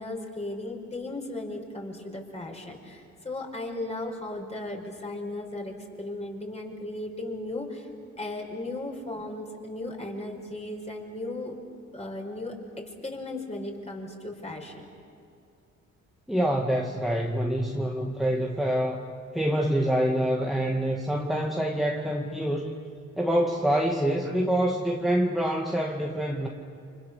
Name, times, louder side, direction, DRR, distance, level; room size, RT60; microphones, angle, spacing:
voice 1, 0.0-7.9 8.2-11.5 11.9-12.6 13.0-14.9, left 2 dB, 20° left, 2 dB, 5.3 m, -36 dB
voice 2, 16.3-19.0 19.3-22.7 23.2-26.5, right 1 dB, ahead, 0 dB, 2.0 m, -26 dB
30.0 x 26.0 x 6.8 m, 2.5 s
cardioid pair, 90°, 30 cm